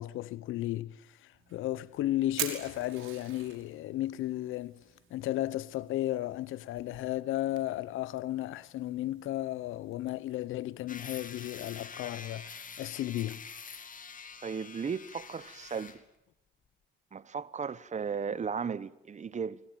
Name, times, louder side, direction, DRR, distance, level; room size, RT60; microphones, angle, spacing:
voice 1, 0.0-4.8 5.1-13.4, left 14 dB, 90° left, 1.0 m, -34 dB
Fire, 1.3-12.8, right 10 dB, 85° right, 5.6 m, -47 dB
sound 1, 10.9-16.0, left 6 dB, 40° left, 2.9 m, -46 dB
voice 2, 14.4-16.0 17.1-19.6, right 6 dB, 35° right, 1.1 m, -35 dB
26.0 x 24.0 x 9.2 m
cardioid pair, 90°, 20 cm